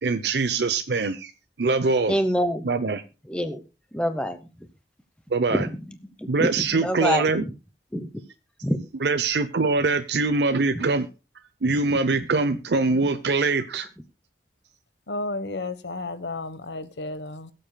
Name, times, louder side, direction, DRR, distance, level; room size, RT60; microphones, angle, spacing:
voice 1, 0.0-1.3 1.6-2.2 2.6-3.0 5.3-5.7 6.3-7.4 9.0-11.1 11.6-13.9, right 3 dB, 75° right, 0.7 m, -23 dB
voice 2, 2.1-2.7 3.3-3.6 3.9-4.4 5.5-7.3 7.9-8.1 8.6-8.8 10.7-10.8 12.9-13.1, equal, 5° left, 0.8 m, -26 dB
voice 3, 15.1-17.5, left 2 dB, 80° left, 1.1 m, -32 dB
22.0 x 7.7 x 2.2 m
head